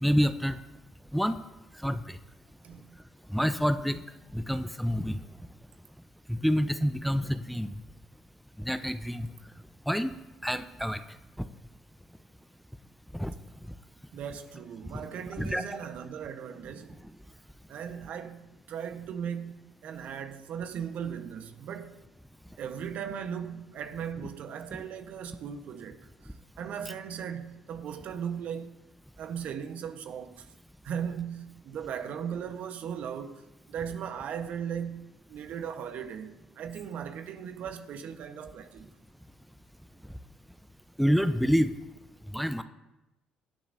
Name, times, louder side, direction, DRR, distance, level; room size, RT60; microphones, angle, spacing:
voice 1, 0.0-0.5 1.1-1.4 1.8-2.0 3.3-4.0 4.3-5.2 6.3-7.7 8.6-9.3 9.9-10.1 10.4-11.0 13.1-13.3 15.4-15.6 41.0-41.8 42.3-42.6, equal, ahead, 0.8 m, -27 dB
voice 2, 2.6-2.9 14.1-17.0 17.7-22.0 22.6-28.7 29.2-30.5 30.8-38.9, right 8 dB, 60° right, 1.2 m, -38 dB
23.5 x 10.0 x 2.8 m
hypercardioid pair, 50°, 3 cm